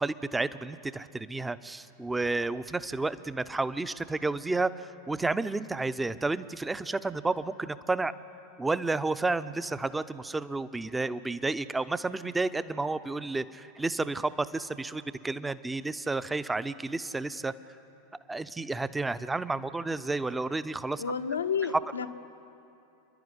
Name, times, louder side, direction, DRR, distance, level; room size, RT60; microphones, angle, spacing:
voice 1, 0.0-8.1 8.6-17.5 18.3-21.0, right 3 dB, 10° right, 14 dB, 0.7 m, -31 dB
voice 2, 21.0-22.1, left 6 dB, 85° left, 8 dB, 1.0 m, -30 dB
29.0 x 11.0 x 9.7 m, 2.8 s
hypercardioid pair, 90°, 0 cm